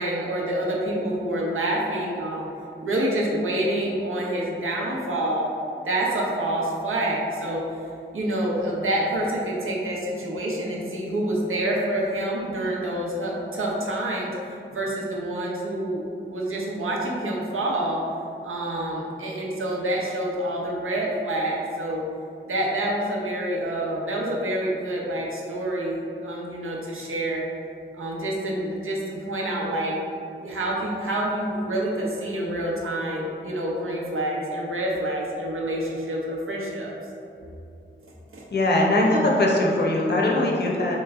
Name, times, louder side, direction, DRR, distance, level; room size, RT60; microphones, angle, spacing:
voice 1, 0.0-2.5 2.8-5.5 5.8-7.6 8.1-18.0 18.4-22.0 22.5-27.5 27.9-30.0 30.4-36.9 38.3-38.4, right 1 dB, 85° right, -3 dB, 0.7 m, -27 dB
voice 2, 38.5-41.0, left 1 dB, 55° left, -2 dB, 0.7 m, -21 dB
3.3 x 3.0 x 3.4 m, 2.6 s
wide cardioid pair, 80°, 21 cm